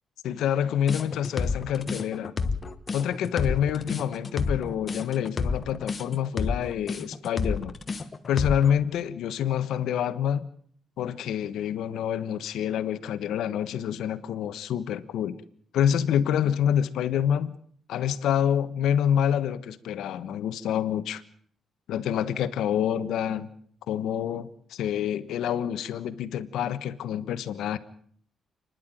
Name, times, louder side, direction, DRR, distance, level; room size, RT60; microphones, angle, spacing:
voice 1, 0.2-2.3 2.9-7.8 8.3-10.5 11.0-15.4 15.7-17.5 17.9-21.2 21.9-23.5 23.9-27.8, left 9 dB, 85° left, 1.3 m, -27 dB
sound 1, 0.9-8.7, left 4 dB, 25° left, 1.2 m, -29 dB
29.5 x 11.0 x 9.2 m
cardioid pair, 175°, 0 cm